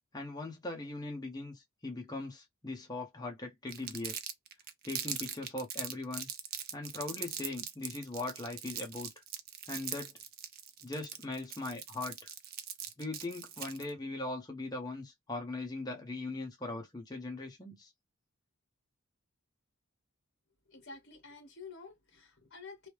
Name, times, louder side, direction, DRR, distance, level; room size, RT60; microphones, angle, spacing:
voice 1, 0.1-4.2 4.8-6.3 6.7-9.1 9.7-10.2 10.8-12.3 13.0-17.9, left 2 dB, 20° left, 0.7 m, -40 dB
Crumpling crinkling, 3.7-13.9, right 9 dB, 45° right, 0.6 m, -41 dB
voice 2, 20.7-22.9, left 4 dB, 50° left, 1.7 m, -50 dB
3.2 x 2.1 x 3.1 m
head